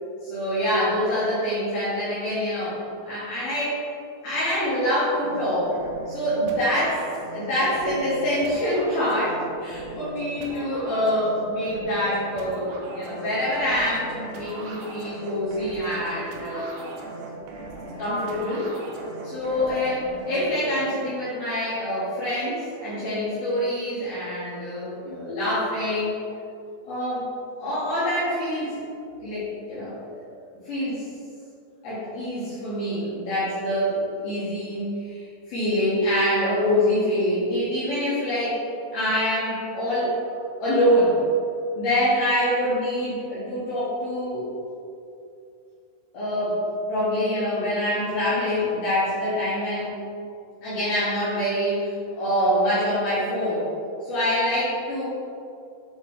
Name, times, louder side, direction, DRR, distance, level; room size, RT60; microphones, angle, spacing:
voice 1, 0.2-3.8 4.2-5.7 6.1-7.0 7.3-16.7 17.8-18.7 19.2-26.2 26.8-27.3 27.6-28.8 29.2-30.2 30.6-31.1 31.8-38.6 38.9-40.1 40.6-41.2 41.8-44.5 46.1-46.6 46.9-50.0 50.6-53.6 54.0-55.0, equal, 65° left, -11 dB, 2.9 m, -25 dB
sound 1, 5.2-20.8, right 2 dB, 90° right, 3.2 m, -39 dB
8.8 x 4.0 x 3.8 m, 2.6 s
omnidirectional pair, 5.5 m